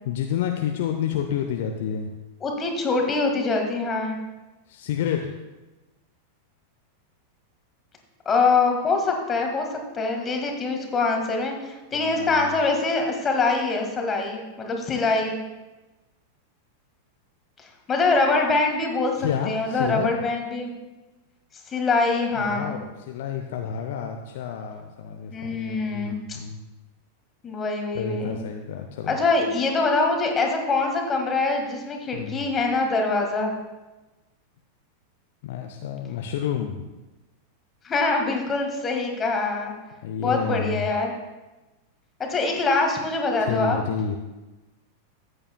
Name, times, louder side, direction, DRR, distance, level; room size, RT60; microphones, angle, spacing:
voice 1, 0.0-2.1 4.7-5.3 11.9-12.6 19.2-20.1 22.4-26.6 27.9-29.2 32.1-32.5 35.4-36.9 40.0-40.9 43.4-44.2, left 8 dB, 55° left, 4 dB, 0.6 m, -29 dB
voice 2, 2.4-4.2 8.3-9.7 9.9-15.4 17.6-20.7 21.7-22.8 25.3-26.2 27.4-28.4 29.1-33.5 37.8-39.7 40.2-41.1 42.2-43.8, left 3 dB, 20° left, 3 dB, 1.7 m, -24 dB
13.5 x 8.7 x 2.2 m, 1.1 s
figure-of-eight pair, 90°, 0 cm